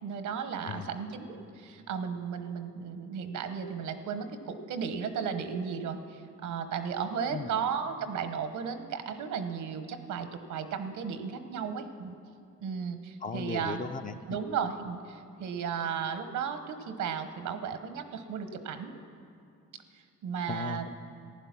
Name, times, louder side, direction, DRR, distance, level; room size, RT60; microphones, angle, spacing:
voice 1, 0.0-12.1 12.6-13.8 14.3-19.0 19.9-20.8, right 6 dB, 80° right, 9 dB, 1.0 m, -35 dB
voice 2, 13.2-14.4 20.5-20.9, left 5 dB, 25° left, 9 dB, 0.5 m, -37 dB
15.0 x 9.9 x 5.9 m, 2.5 s
cardioid pair, 90°, 30 cm